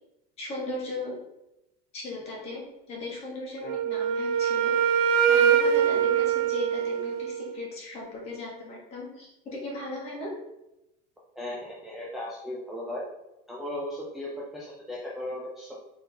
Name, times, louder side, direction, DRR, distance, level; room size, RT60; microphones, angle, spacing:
voice 1, 0.4-1.1 1.9-4.7 5.3-10.3, left 2 dB, 30° left, -3 dB, 1.4 m, -37 dB
Wind instrument woodwind instrument, 3.6-7.5, right 8 dB, 70° right, 0.4 m, -23 dB
voice 2, 11.4-13.0 13.5-15.7, left 1 dB, ahead, -6 dB, 0.4 m, -36 dB
3.8 x 3.8 x 2.8 m, 0.89 s
cardioid pair, 160°, 20 cm